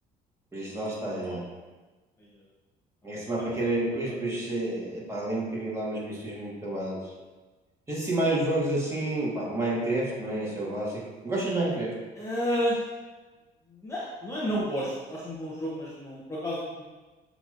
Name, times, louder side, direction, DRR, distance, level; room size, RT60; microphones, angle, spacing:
voice 1, 0.5-1.4 3.0-7.1 7.9-11.9, right 2 dB, 15° right, -6 dB, 1.4 m, -29 dB
voice 2, 3.0-3.7 4.0-4.2 12.1-12.9 13.7-16.8, equal, 15° left, -6 dB, 0.7 m, -32 dB
6.5 x 2.9 x 2.5 m, 1.2 s
cardioid pair, 110°, 17 cm